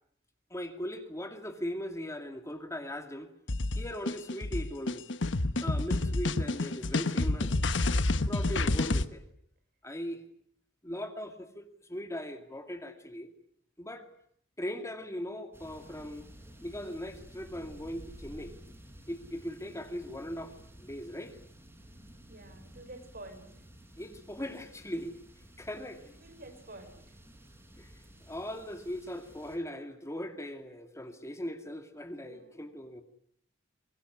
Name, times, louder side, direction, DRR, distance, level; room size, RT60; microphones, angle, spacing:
voice 1, 0.5-3.3 3.7-5.1 5.6-7.6 8.1-9.2 9.8-10.2 10.8-13.3 13.8-14.1 14.6-16.2 16.6-18.6 19.1-21.4 24.0-26.0 27.8-27.9 28.3-33.0, equal, 15° left, 6 dB, 2.3 m, -39 dB
sound 1, 3.5-9.0, left 2 dB, 75° left, 1.2 m, -29 dB
sound 2, 15.5-29.6, right 1 dB, 15° right, 5.5 m, -53 dB
voice 2, 19.6-20.0 22.3-23.6 26.0-27.2 32.2-32.8, right 2 dB, 55° right, 8 dB, 5.5 m, -50 dB
24.5 x 22.0 x 9.6 m, 0.67 s
head